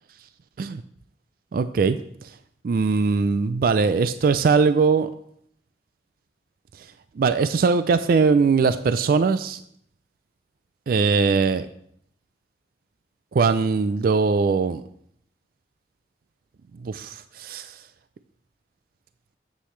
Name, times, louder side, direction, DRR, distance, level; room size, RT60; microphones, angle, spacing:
voice 1, 1.5-2.3 2.6-5.1 7.2-9.6 10.9-11.7 13.3-14.8 16.8-17.8, right 4 dB, 55° right, 12 dB, 0.3 m, -21 dB
9.9 x 7.6 x 3.2 m, 0.68 s
head